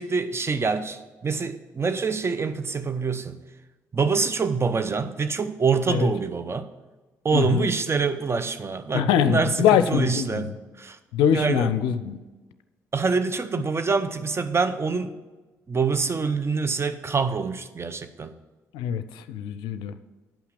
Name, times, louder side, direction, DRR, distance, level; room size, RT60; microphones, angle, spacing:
voice 1, 0.0-3.4 3.9-6.7 7.2-10.5 10.8-11.0 11.3-11.7 12.9-15.1 15.7-18.3, right 5 dB, 30° right, 11 dB, 0.8 m, -25 dB
voice 2, 7.3-7.7 8.9-10.5 11.1-12.2 18.7-19.9, left 8 dB, 70° left, 11 dB, 0.5 m, -23 dB
8.8 x 5.7 x 7.8 m, 1.2 s
figure-of-eight pair, 40°, 8 cm